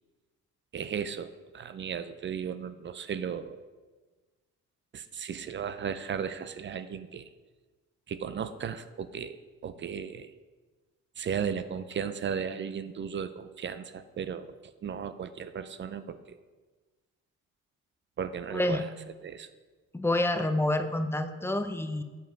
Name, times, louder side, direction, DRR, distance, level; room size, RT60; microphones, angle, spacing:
voice 1, 0.7-3.6 4.9-7.3 8.1-10.3 11.2-16.4 18.2-18.9 19.2-19.5, right 7 dB, 40° right, 12 dB, 0.4 m, -35 dB
voice 2, 18.5-18.8 19.9-22.0, left 1 dB, 10° left, 7 dB, 0.6 m, -28 dB
8.1 x 5.0 x 4.5 m, 1.3 s
cardioid pair, 90°, 30 cm